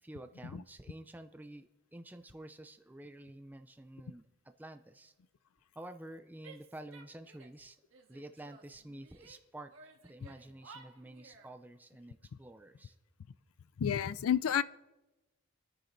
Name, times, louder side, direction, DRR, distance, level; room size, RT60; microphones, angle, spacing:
voice 1, 0.0-5.1 5.8-7.8 8.1-9.7 10.0-13.0, right 1 dB, 10° right, 8 dB, 0.3 m, -50 dB
Female speech woman speaking / Yell, 6.4-7.6 7.9-9.4 9.7-11.5, right 4 dB, 65° right, 1.5 m, -56 dB
voice 2, 13.8-14.6, left 8 dB, 80° left, 17 dB, 0.4 m, -30 dB
27.5 x 10.0 x 2.6 m, 1.1 s
head